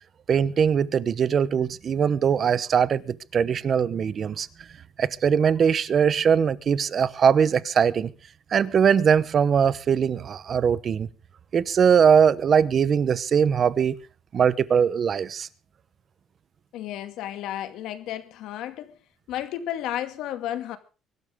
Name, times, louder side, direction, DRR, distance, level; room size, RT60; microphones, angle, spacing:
voice 1, 0.3-4.5 5.0-8.1 8.5-11.1 11.5-14.0 14.3-15.5, right 7 dB, 40° right, 1.0 m, -21 dB
voice 2, 16.7-18.9 19.3-20.8, left 12 dB, 75° left, 2.3 m, -32 dB
24.0 x 12.0 x 3.7 m
cardioid pair, 145°, 0 cm